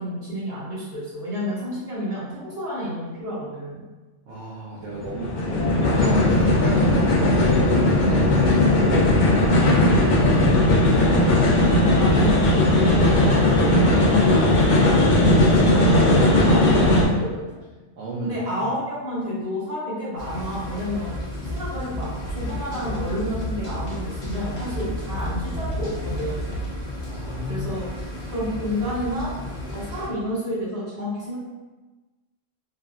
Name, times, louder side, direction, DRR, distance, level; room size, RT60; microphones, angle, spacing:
voice 1, 0.0-3.8 12.0-12.5 12.7-17.6 18.2-21.1 21.5-26.5 27.5-27.9 28.3-29.3 29.7-31.4, equal, 55° right, -11 dB, 1.6 m, -30 dB
voice 2, 4.3-6.1 6.3-11.2 18.0-18.3 22.4-22.5 27.1-27.7, right 1 dB, 80° right, -8 dB, 1.0 m, -33 dB
sound 1, 4.9-17.0, left 1 dB, 55° left, 0.5 m, -18 dB
sound 2, 20.2-30.1, left 1 dB, 5° left, 0.8 m, -34 dB
sound 3, 21.1-26.7, right 1 dB, 70° left, 1.0 m, -32 dB
3.3 x 2.4 x 2.4 m, 1.2 s
omnidirectional pair, 1.3 m